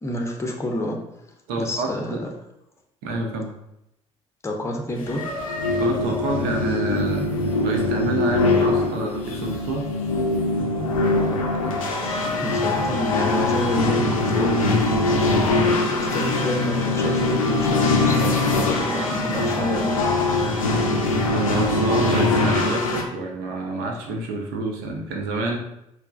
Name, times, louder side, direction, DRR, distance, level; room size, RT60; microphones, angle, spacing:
voice 1, 0.0-1.0 1.6-2.3 4.4-5.2 12.0-14.8 15.5-20.0, left 1 dB, 15° left, 1 dB, 0.6 m, -28 dB
voice 2, 1.5-2.2 3.0-3.5 5.8-9.9 21.3-25.6, right 2 dB, 65° right, 2 dB, 0.6 m, -28 dB
sound 1, 5.0-23.0, left 2 dB, 80° left, 0.4 m, -22 dB
4.4 x 2.0 x 2.3 m, 0.81 s
figure-of-eight pair, 50°, 17 cm